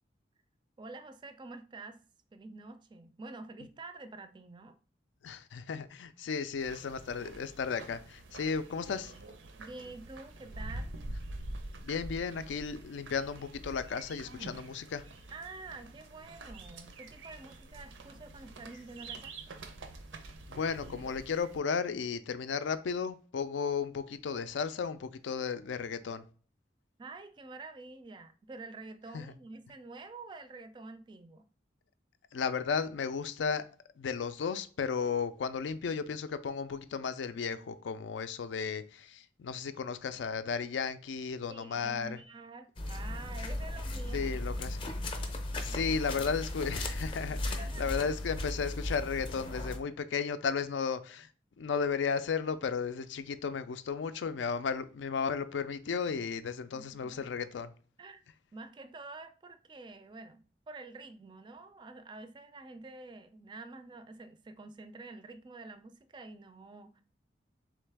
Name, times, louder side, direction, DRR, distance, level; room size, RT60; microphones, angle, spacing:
voice 1, 0.8-2.0 2.3-4.7 9.6-10.9 15.3-19.3 27.0-31.4 41.5-44.4 45.7-46.3 47.6-48.1 56.7-57.3 58.0-58.2 58.5-67.0, right 3 dB, 25° right, 0.3 m, -48 dB
voice 2, 5.2-9.1 11.8-15.0 20.5-26.2 29.1-29.3 32.3-33.6 34.0-42.2 44.1-44.9 45.6-51.3 51.6-57.7, left 5 dB, 80° left, 0.4 m, -34 dB
sound 1, 6.6-21.6, right 2 dB, 85° right, 0.6 m, -46 dB
sound 2, 42.8-49.8, left 1 dB, 30° left, 0.5 m, -36 dB
3.8 x 3.2 x 3.4 m
head